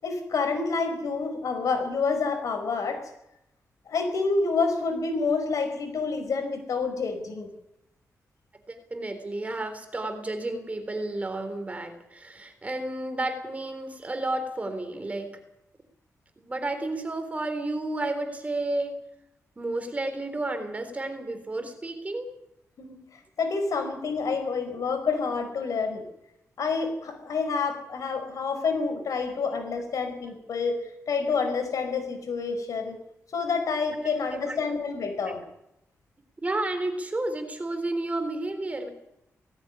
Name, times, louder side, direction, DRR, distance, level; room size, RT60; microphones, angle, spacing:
voice 1, 0.0-3.0 3.9-7.5 22.8-23.0 23.4-26.0 26.6-30.8 31.1-33.0 33.3-35.4, left 4 dB, 80° left, 6 dB, 5.2 m, -28 dB
voice 2, 8.7-15.4 16.4-19.0 19.6-22.3 29.4-29.5 34.0-34.6 36.4-38.9, right 2 dB, 25° right, 7 dB, 3.8 m, -32 dB
18.5 x 15.0 x 9.9 m, 0.85 s
wide cardioid pair, 110°, 6 cm